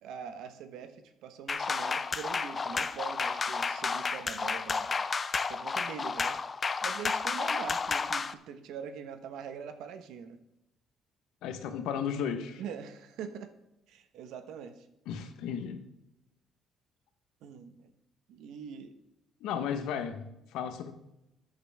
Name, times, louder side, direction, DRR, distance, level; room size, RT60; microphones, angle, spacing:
voice 1, 0.0-4.9 5.5-10.4 12.6-13.5 13.9-14.9 17.4-17.9 18.3-18.9 19.7-19.8, right 7 dB, 75° right, 1.2 m, -43 dB
sound 1, 1.5-8.3, left 4 dB, 25° left, 0.4 m, -31 dB
voice 2, 11.4-12.6 15.1-15.8 19.4-20.9, left 7 dB, 90° left, 1.2 m, -34 dB
13.5 x 7.9 x 3.6 m
cardioid pair, 165°, 0 cm